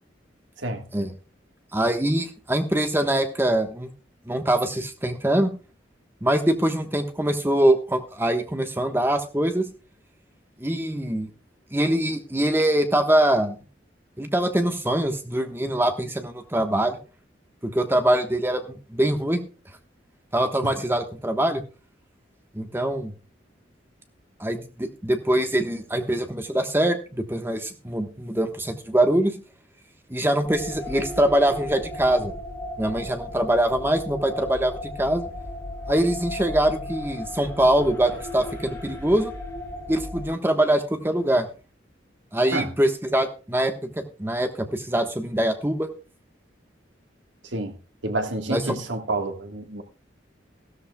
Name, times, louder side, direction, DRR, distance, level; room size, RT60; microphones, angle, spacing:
voice 1, 1.7-3.9 4.3-5.5 6.2-9.7 10.6-11.3 11.7-13.6 14.2-17.0 17.6-19.4 20.3-21.6 22.5-23.1 24.4-29.3 30.1-32.3 32.8-35.3 35.9-39.3 39.9-41.5 42.3-45.9 48.5-48.8, right 1 dB, 10° right, 1.2 m, -23 dB
sound 1, 30.4-40.3, left 1 dB, 15° left, 4.2 m, -35 dB
voice 2, 48.0-49.8, right 2 dB, 90° right, 1.6 m, -29 dB
15.0 x 13.0 x 2.3 m
head